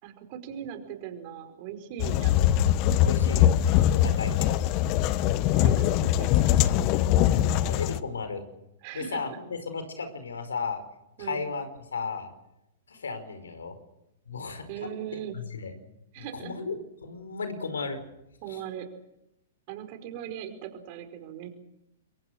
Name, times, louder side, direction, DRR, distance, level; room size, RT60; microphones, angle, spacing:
voice 1, 0.0-2.4 5.3-6.7 8.8-9.4 11.2-11.5 14.7-15.4 16.1-16.5 18.4-18.9 19.7-21.5, right 10 dB, 45° right, 7 dB, 5.0 m, -39 dB
sound 1, 2.0-8.0, left 12 dB, 40° left, 1.2 m, -22 dB
voice 2, 3.0-3.4 3.8-4.6 7.5-8.4 8.9-10.8 11.2-11.7 11.9-12.3 12.9-13.8 14.2-15.0 15.3-15.7 16.2-18.0 18.5-18.6, left 4 dB, 80° left, 9 dB, 5.0 m, -35 dB
28.5 x 23.0 x 6.5 m, 0.87 s
hypercardioid pair, 115°, 0 cm